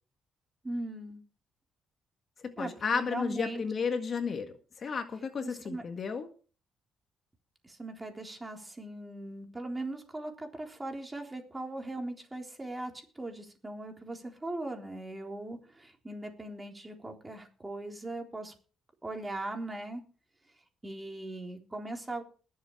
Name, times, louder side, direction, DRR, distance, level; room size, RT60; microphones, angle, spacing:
voice 1, 0.6-1.2 2.6-3.6 5.4-5.8 7.6-18.5 19.0-20.1 20.8-22.2, right 2 dB, 15° right, 3 dB, 3.7 m, -39 dB
voice 2, 2.4-6.3, left 5 dB, 50° left, 7 dB, 1.8 m, -33 dB
20.5 x 7.4 x 4.7 m, 0.38 s
cardioid pair, 90°, 0 cm